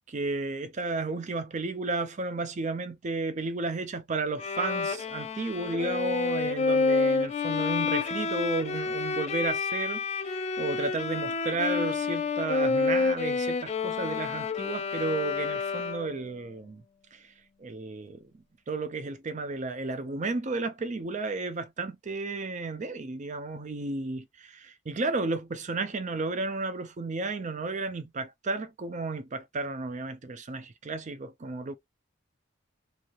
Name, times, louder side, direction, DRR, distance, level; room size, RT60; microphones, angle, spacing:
voice 1, 0.1-16.8 17.1-17.2 17.6-18.2 18.7-31.7, right 3 dB, 35° right, 0.5 m, -33 dB
Bowed string instrument, 4.4-16.2, left 4 dB, 35° left, 0.4 m, -29 dB
3.1 x 2.7 x 2.5 m
head